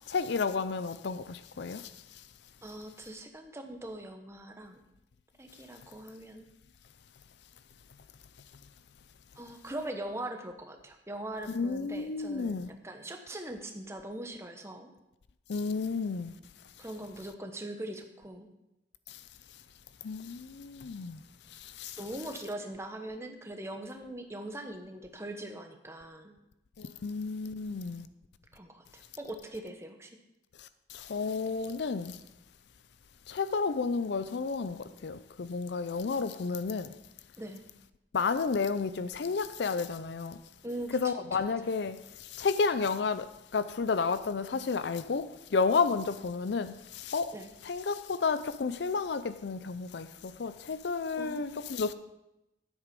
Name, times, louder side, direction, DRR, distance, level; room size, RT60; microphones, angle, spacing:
voice 1, 0.1-1.9 11.5-12.7 15.5-16.3 19.1-19.2 20.0-21.2 21.5-22.0 26.8-28.1 30.6-32.2 33.3-36.9 38.1-40.4 40.9-47.3 47.6-51.9, left 4 dB, 65° left, 0.5 m, -32 dB
voice 2, 2.6-4.8 5.4-6.4 9.4-14.9 16.8-18.5 22.0-26.4 28.5-30.2 37.4-37.6 40.6-41.5 47.3-47.5 51.2-51.8, right 1 dB, 15° right, 1.0 m, -41 dB
9.9 x 8.1 x 5.2 m
head